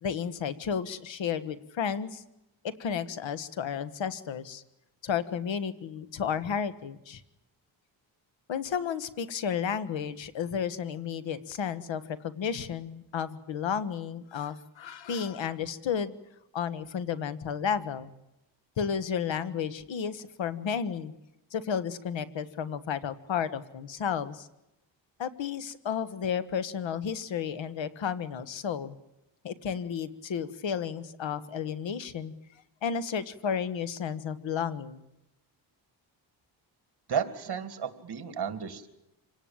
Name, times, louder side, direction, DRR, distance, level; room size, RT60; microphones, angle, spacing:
voice 1, 0.0-2.2 2.6-4.6 5.0-7.2 8.5-16.1 16.5-18.1 18.8-21.1 21.5-24.5 25.2-29.0 29.4-32.3 32.8-35.1, left 7 dB, 75° left, 14 dB, 1.5 m, -32 dB
voice 2, 37.1-38.9, right 7 dB, 55° right, 10 dB, 2.5 m, -33 dB
26.5 x 18.0 x 8.9 m, 0.90 s
wide cardioid pair, 125°, 46 cm